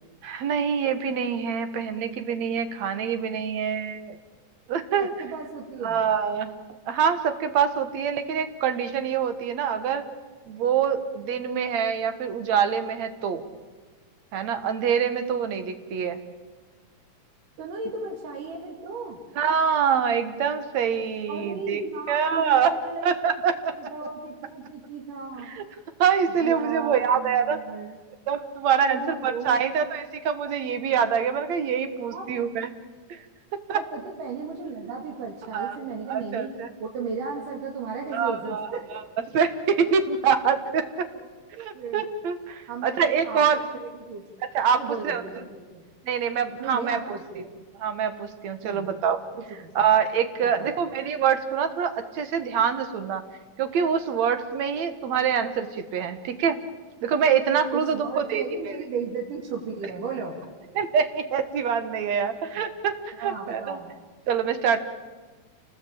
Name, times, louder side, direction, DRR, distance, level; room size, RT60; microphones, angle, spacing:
voice 1, 0.2-4.2 4.7-5.1 5.8-6.5 6.9-10.0 10.5-13.4 14.3-16.2 19.4-21.8 22.1-22.7 23.0-23.9 25.5-25.6 26.0-27.6 28.3-32.7 33.1-33.2 33.7-33.8 35.5-35.8 36.1-36.7 38.1-38.7 39.3-41.1 41.6-43.6 44.5-44.8 45.0-45.2 46.0-47.5 47.8-49.2 49.8-53.2 53.6-56.6 57.0-58.8 60.8-63.8 64.3-64.8, right 7 dB, 60° right, 9 dB, 2.6 m, -25 dB
voice 2, 5.0-6.0 17.6-19.2 21.3-23.2 23.8-25.5 26.3-28.0 28.8-29.6 32.1-32.2 33.7-36.5 36.8-38.9 41.1-41.3 41.7-42.0 42.7-44.2 44.7-45.8 46.6-47.4 48.6-48.9 49.4-49.8 50.4-50.7 57.7-60.4 63.2-63.9, right 5 dB, 85° right, -1 dB, 3.9 m, -35 dB
28.5 x 19.5 x 8.8 m, 1.3 s
omnidirectional pair, 3.6 m